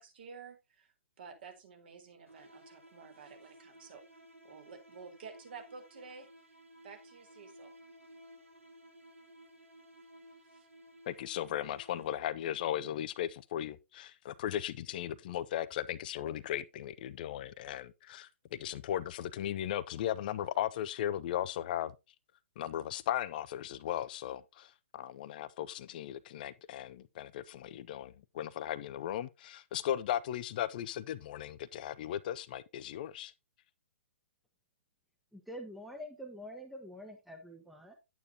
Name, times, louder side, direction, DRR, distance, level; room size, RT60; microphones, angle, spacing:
voice 1, 0.0-4.0 4.4-6.3 6.8-7.7 10.4-10.7, right 5 dB, 50° right, 3.8 m, -51 dB
sound 1, 2.3-12.5, equal, 85° right, 2.5 m, -57 dB
voice 2, 11.1-21.9 22.6-33.3, left 11 dB, 40° left, 0.5 m, -37 dB
voice 3, 35.3-38.0, equal, ahead, 1.1 m, -46 dB
10.5 x 9.0 x 2.8 m
figure-of-eight pair, 120°, 7 cm